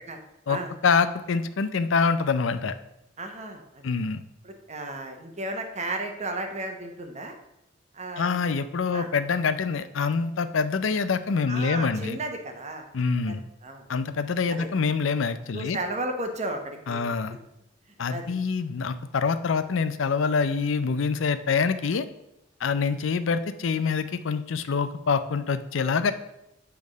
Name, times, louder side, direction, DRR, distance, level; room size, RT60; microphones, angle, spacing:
voice 1, 0.8-2.7 3.8-4.2 8.2-12.2 12.9-13.4 13.9-15.8 16.9-17.4 18.0-22.1 22.6-26.1, left 5 dB, 75° left, 12 dB, 0.5 m, -25 dB
voice 2, 3.2-3.9 4.4-7.3 7.9-8.3 8.9-9.1 11.5-12.9 13.2-13.3 13.6-13.8 14.5-14.7 15.5-17.1 18.1-18.3, right 2 dB, 35° right, 4 dB, 1.0 m, -34 dB
8.5 x 3.5 x 6.3 m, 0.88 s
head